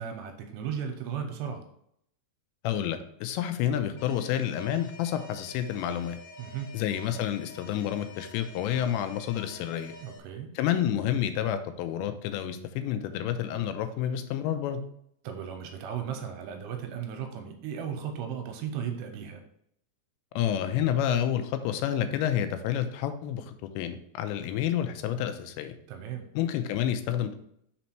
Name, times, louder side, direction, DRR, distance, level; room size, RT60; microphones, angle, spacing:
voice 1, 0.0-1.6 6.4-6.7 10.0-10.5 15.2-19.4 25.9-26.2, right 8 dB, 85° right, 4 dB, 2.7 m, -36 dB
voice 2, 2.6-6.2 6.7-9.9 10.6-14.8 20.4-25.7 26.4-27.4, left 10 dB, 90° left, 9 dB, 2.9 m, -29 dB
Alarm, 4.0-10.2, left 2 dB, 65° left, 2.4 m, -48 dB
6.1 x 4.2 x 4.4 m, 0.71 s
omnidirectional pair, 5.0 m